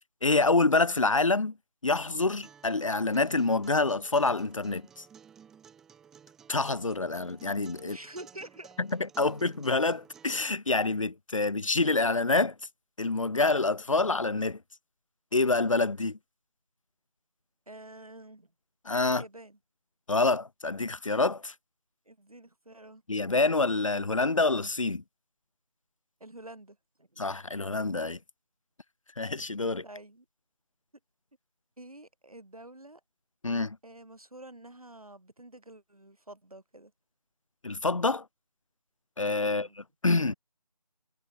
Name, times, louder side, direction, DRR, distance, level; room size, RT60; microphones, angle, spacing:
voice 1, 0.2-1.6 1.8-5.1 6.5-8.0 8.8-8.9 9.2-12.5 13.0-14.6 15.3-16.2 18.8-19.2 20.1-21.5 23.1-25.0 27.2-28.2 29.2-29.8 33.4-33.8 37.6-38.2 39.2-40.3, left 3 dB, 55° left, 0.6 m, -27 dB
Acoustic guitar, 2.4-10.4, right 8 dB, ahead, 2.0 m, -55 dB
voice 2, 7.8-8.8 17.7-18.5 19.1-19.6 22.0-23.0 26.2-27.2 29.8-30.2 31.8-33.0 33.8-36.9 39.5-39.8, right 1 dB, 65° right, 6.7 m, -48 dB
figure-of-eight pair, 165°, 20 cm